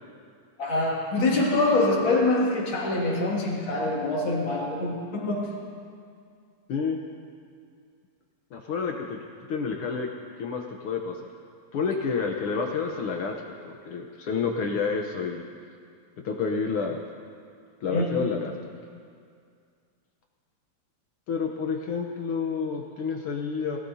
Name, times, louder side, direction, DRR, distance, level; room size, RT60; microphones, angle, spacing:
voice 1, 0.6-5.6 17.9-18.1, left 2 dB, 45° left, -3 dB, 2.8 m, -25 dB
voice 2, 8.5-9.2 9.5-10.1 10.4-11.3 11.7-13.4 13.6-15.4 16.2-17.0 17.8-18.5 21.3-23.8, left 5 dB, 65° left, 2 dB, 1.4 m, -29 dB
21.5 x 17.5 x 2.7 m, 2.3 s
omnidirectional pair, 3.3 m